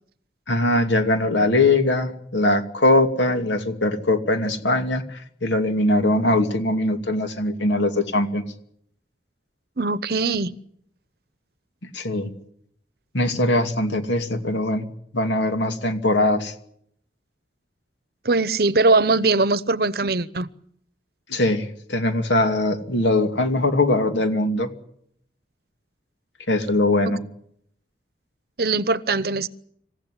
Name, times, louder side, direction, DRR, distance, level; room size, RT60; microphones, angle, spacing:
voice 1, 0.5-8.4 11.9-12.3 13.1-14.9 15.1-16.5 21.3-24.7 26.5-27.2, left 2 dB, 80° left, 2.6 m, -21 dB
voice 2, 9.8-10.5 18.2-20.5 27.1-27.2 28.6-29.5, right 3 dB, 55° right, 0.9 m, -21 dB
27.0 x 15.5 x 10.0 m
head